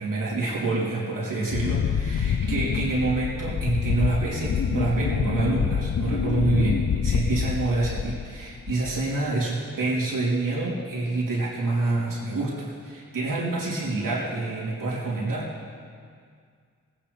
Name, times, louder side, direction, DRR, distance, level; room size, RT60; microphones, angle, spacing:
voice 1, 0.0-15.6, right 2 dB, 80° right, -5 dB, 3.5 m, -27 dB
Wind, 1.5-8.3 8.7-9.1, left 7 dB, 70° left, 0.8 m, -26 dB
19.0 x 9.0 x 5.2 m, 2.1 s
cardioid pair, 65°, 32 cm